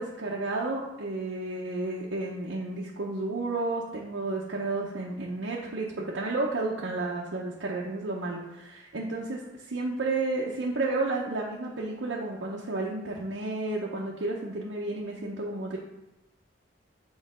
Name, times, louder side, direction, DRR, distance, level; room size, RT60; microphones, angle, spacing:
voice 1, 0.0-15.8, right 2 dB, 75° right, -3 dB, 0.7 m, -32 dB
6.5 x 3.2 x 4.9 m, 0.95 s
head